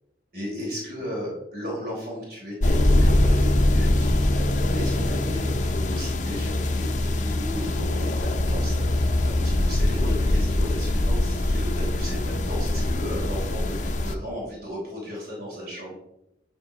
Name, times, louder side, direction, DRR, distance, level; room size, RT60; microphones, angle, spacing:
voice 1, 0.3-16.0, equal, 55° right, -4 dB, 3.6 m, -35 dB
sound 1, 2.6-14.1, left 1 dB, 45° left, 0.6 m, -23 dB
9.3 x 5.0 x 4.8 m, 0.86 s
head